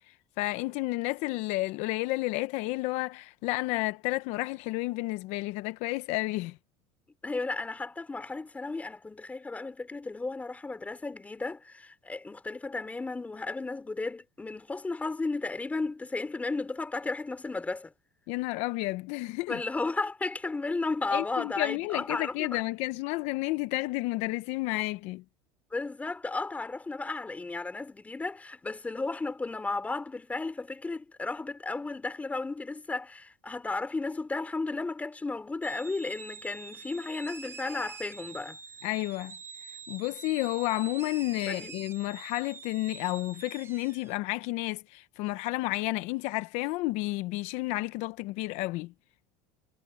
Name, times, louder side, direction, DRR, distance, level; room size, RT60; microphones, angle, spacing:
voice 1, 0.1-6.6 18.3-19.6 21.1-25.2 38.8-39.4 39.9-48.9, left 20 dB, 65° left, 0.8 m, -31 dB
voice 2, 7.2-17.9 19.5-22.6 25.7-38.6 41.5-41.8, left 3 dB, 10° left, 3.7 m, -34 dB
sound 1, 35.6-44.1, right 5 dB, 20° right, 1.2 m, -46 dB
cardioid pair, 135°, 12 cm